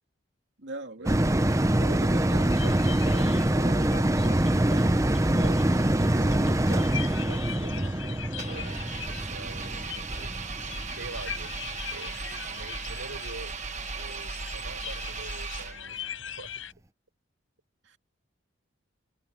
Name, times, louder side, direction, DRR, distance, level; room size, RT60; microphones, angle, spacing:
voice 1, 0.6-1.2 17.8-18.0, right 2 dB, 60° right, 2.6 m, -39 dB
sound 1, 1.1-11.8 12.2-12.3, right 1 dB, 15° right, 0.7 m, -25 dB
voice 2, 1.7-5.6 6.1-10.4 10.9-11.5 11.9-13.5 14.0-16.6, right 2 dB, 90° right, 5.8 m, -44 dB
sound 2, 2.3-16.7, left 9 dB, 70° left, 7.5 m, -42 dB
Engine, 8.4-16.1, right 4 dB, 35° right, 1.4 m, -37 dB
head